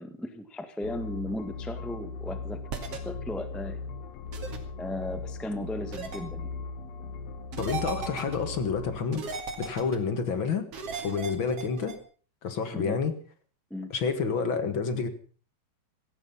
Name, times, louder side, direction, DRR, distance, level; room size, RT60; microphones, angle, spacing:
voice 1, 0.0-2.6 2.9-3.8 4.8-6.5 12.7-13.0 13.7-13.9, left 1 dB, ahead, 9 dB, 0.6 m, -36 dB
sound 1, 0.8-9.0, left 4 dB, 65° left, 2.2 m, -38 dB
sound 2, 2.7-3.0 4.3-4.6 5.9-6.2 7.5-8.4 9.1-10.0 10.7-12.0, right 5 dB, 55° right, 3.4 m, -36 dB
voice 2, 7.6-9.2 9.6-10.7 11.0-12.0 12.4-13.2 13.9-15.1, left 5 dB, 45° left, 10 dB, 2.1 m, -29 dB
16.5 x 15.5 x 5.6 m, 0.40 s
omnidirectional pair, 3.4 m